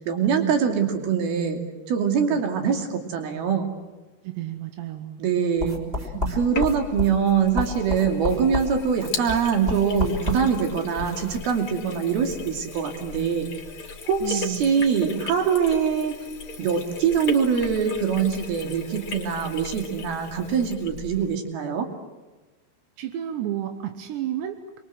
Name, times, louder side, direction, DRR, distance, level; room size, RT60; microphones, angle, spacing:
voice 1, 0.0-1.6 1.9-3.7 5.2-5.8 6.3-13.5 14.0-16.1 16.6-21.9, right 6 dB, 65° right, 4 dB, 4.4 m, -23 dB
voice 2, 4.2-5.2 6.1-6.4 14.2-14.7 15.0-15.1 23.0-24.8, right 12 dB, 85° right, 7 dB, 3.4 m, -31 dB
sound 1, 5.6-11.4, left 2 dB, 15° right, 3.8 m, -31 dB
Sink (filling or washing), 6.3-21.4, left 4 dB, 35° left, 2.8 m, -38 dB
27.0 x 23.0 x 7.9 m, 1.2 s
omnidirectional pair, 4.9 m